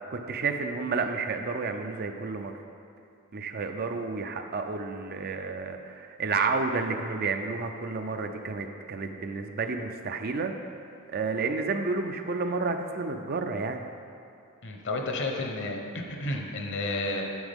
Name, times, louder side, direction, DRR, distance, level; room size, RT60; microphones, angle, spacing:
voice 1, 0.1-2.5 3.3-10.5 11.1-13.8, right 4 dB, 45° right, 6 dB, 0.5 m, -31 dB
voice 2, 14.6-17.2, left 2 dB, 55° left, 2 dB, 1.0 m, -31 dB
9.5 x 7.2 x 3.6 m, 2.6 s
head